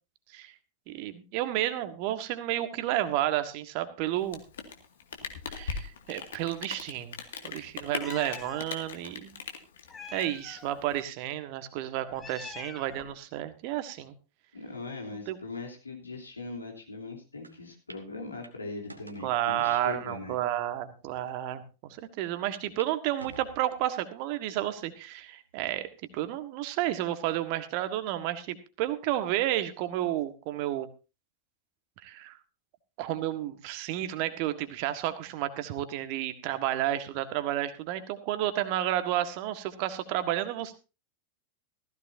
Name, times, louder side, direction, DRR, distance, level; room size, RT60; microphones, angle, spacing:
voice 1, 0.9-4.4 5.5-7.1 7.4-9.4 10.1-14.1 15.3-15.4 19.2-25.9 26.1-30.9 32.0-32.4 33.0-40.8, right 13 dB, 45° right, 10 dB, 1.6 m, -31 dB
Rain, 4.2-11.0, left 6 dB, 60° left, 2.1 m, -40 dB
Meow, 8.0-8.6 9.9-10.8 12.0-13.2, left 5 dB, 20° left, 1.2 m, -44 dB
voice 2, 14.5-20.3, left 3 dB, 80° left, 0 dB, 3.2 m, -40 dB
sound 1, 17.4-17.5 17.9-18.0 18.4-19.3 20.0-20.1 20.8-20.9 21.2-21.3 22.5-22.9 23.2-24.0 24.5-24.9 25.5-25.6 26.7-27.1, right 2 dB, 85° right, 1.5 m, -49 dB
15.5 x 15.0 x 2.7 m, 0.30 s
figure-of-eight pair, 90°, 0 cm